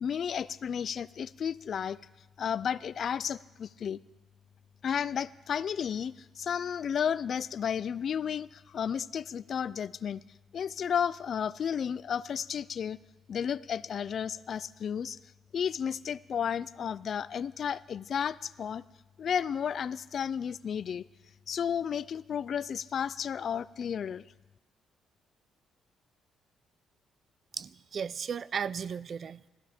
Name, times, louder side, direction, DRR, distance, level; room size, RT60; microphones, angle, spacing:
voice 1, 0.0-2.0 2.4-4.0 4.8-10.2 10.5-13.0 13.3-15.2 15.5-18.8 19.2-21.0 21.5-24.2, left 8 dB, 55° left, 19 dB, 0.4 m, -32 dB
voice 2, 27.6-29.5, right 7 dB, 50° right, 19 dB, 0.4 m, -35 dB
17.5 x 14.0 x 5.1 m, 1.2 s
cardioid pair, 90°, 0 cm